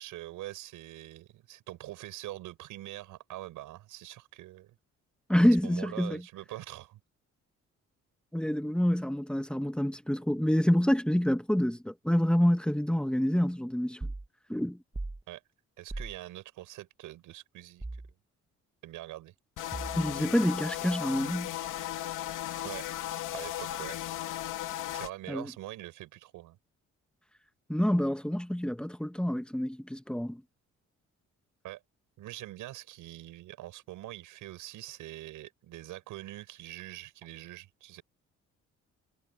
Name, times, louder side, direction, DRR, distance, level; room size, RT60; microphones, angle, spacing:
voice 1, 0.0-4.8 5.6-7.0 15.3-15.4 15.8-18.0 18.8-19.3 22.6-22.9 23.3-24.0 24.9-26.6 31.6-31.8 32.2-38.0, right 15 dB, 90° right, 6.5 m, -44 dB
voice 2, 5.3-6.2 8.3-14.1 14.5-14.8 20.0-21.5 25.3-25.5 27.7-30.4, equal, 5° left, 1.5 m, -27 dB
sound 1, 14.0-14.3 14.9-15.2 15.9-16.2 17.8-18.1 19.7-20.2, right 2 dB, 15° right, 1.0 m, -38 dB
sound 2, 19.6-25.1, left 13 dB, 85° left, 3.0 m, -36 dB
cardioid pair, 70°, 30 cm